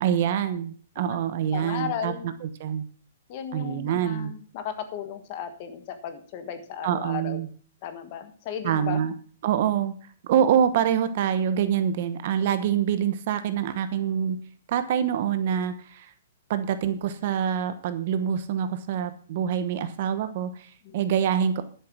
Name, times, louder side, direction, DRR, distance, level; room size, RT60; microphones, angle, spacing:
voice 1, 0.0-2.1 2.6-2.8 3.5-4.3 6.8-7.5 8.6-9.1 9.4-9.9 10.2-14.4 14.7-16.1 16.5-20.7 20.9-21.6, right 9 dB, 40° right, 11 dB, 1.0 m, -25 dB
voice 2, 1.5-2.4 3.3-7.4 7.8-9.1 20.8-20.9, left 8 dB, 30° left, 8 dB, 1.5 m, -35 dB
11.0 x 7.9 x 6.1 m, 0.44 s
hypercardioid pair, 175°, 0 cm